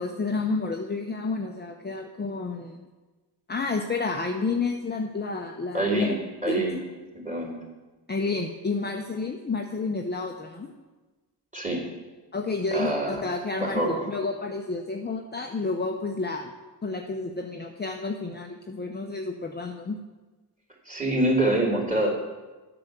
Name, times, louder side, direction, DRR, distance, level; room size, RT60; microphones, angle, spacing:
voice 1, 0.0-2.9 3.5-6.1 6.5-6.6 8.1-10.7 12.3-13.0 13.2-16.5 16.8-20.0, left 3 dB, 20° left, 3 dB, 0.7 m, -30 dB
voice 2, 5.7-6.1 6.4-6.8 7.1-7.6 11.5-11.8 12.7-13.3 13.6-14.0 20.8-22.1, right 1 dB, 15° right, -1 dB, 3.3 m, -25 dB
8.2 x 6.0 x 6.7 m, 1.2 s
supercardioid pair, 50°, 48 cm